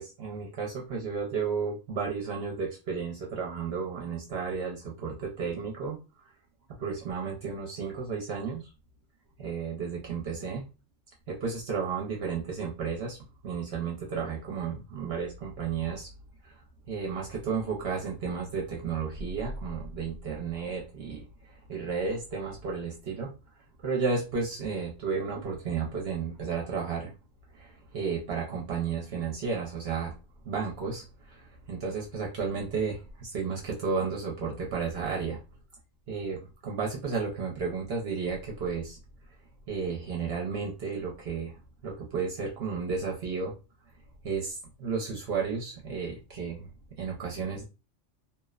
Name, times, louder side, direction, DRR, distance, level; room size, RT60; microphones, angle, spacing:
voice 1, 0.0-6.0 6.8-8.7 9.4-10.6 11.3-13.2 13.4-16.1 16.4-16.5 16.9-23.3 23.8-27.1 27.5-30.1 30.4-35.4 36.1-39.0 39.7-41.6 41.8-43.5 44.2-46.7 47.0-47.6, right 5 dB, 65° right, -1 dB, 0.8 m, -33 dB
2.7 x 2.0 x 2.3 m, 0.29 s
omnidirectional pair, 1.2 m